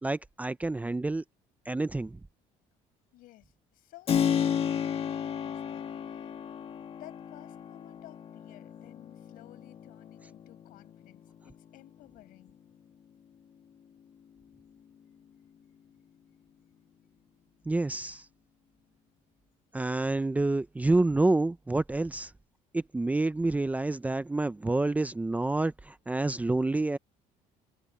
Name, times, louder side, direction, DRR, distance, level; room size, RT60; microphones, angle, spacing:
voice 1, 0.0-1.2 1.7-2.2 17.7-18.3 19.7-22.3 22.7-27.0, right 2 dB, 10° right, 0.6 m, -28 dB
voice 2, 3.1-6.3 7.0-12.6, left 17 dB, 75° left, 6.4 m, -55 dB
Keyboard (musical), 4.1-12.6, left 8 dB, 40° left, 1.8 m, -34 dB
cardioid pair, 120°, 15 cm